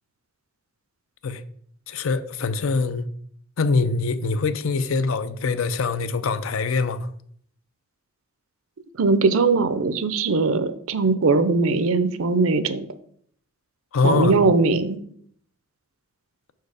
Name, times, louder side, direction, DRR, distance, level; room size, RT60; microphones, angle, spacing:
voice 1, 1.9-3.1 3.6-7.1 13.9-14.4, left 4 dB, 70° left, 0.5 m, -23 dB
voice 2, 9.0-12.9 14.0-15.0, right 3 dB, 70° right, 0.6 m, -20 dB
6.4 x 4.7 x 4.8 m
head